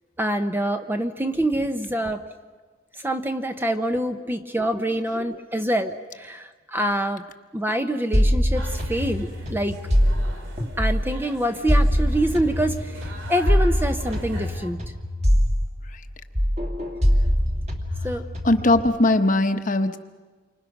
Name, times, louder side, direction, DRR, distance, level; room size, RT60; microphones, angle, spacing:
voice 1, 0.2-2.3 3.0-7.2 7.5-9.8 10.8-14.8 18.0-18.3, right 1 dB, 10° right, 7 dB, 0.8 m, -26 dB
sound 1, 8.1-11.2 11.7-16.1 16.3-18.8, equal, 35° right, 2.2 m, -23 dB
sound 2, 8.5-14.7, right 1 dB, 75° right, 2.9 m, -42 dB
voice 2, 18.4-20.0, left 2 dB, 40° left, 8 dB, 1.1 m, -19 dB
28.5 x 25.0 x 6.0 m, 1.4 s
head